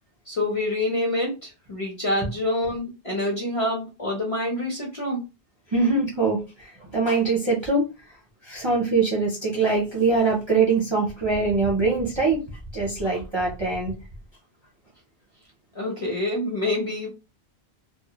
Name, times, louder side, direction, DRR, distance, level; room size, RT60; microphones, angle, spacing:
voice 1, 0.3-5.2 15.7-17.1, left 1 dB, 40° left, -2 dB, 0.6 m, -27 dB
voice 2, 5.7-7.8 8.5-12.4 12.7-13.9, right 4 dB, 35° right, -3 dB, 0.5 m, -23 dB
2.2 x 2.1 x 2.8 m, 0.29 s
omnidirectional pair, 1.1 m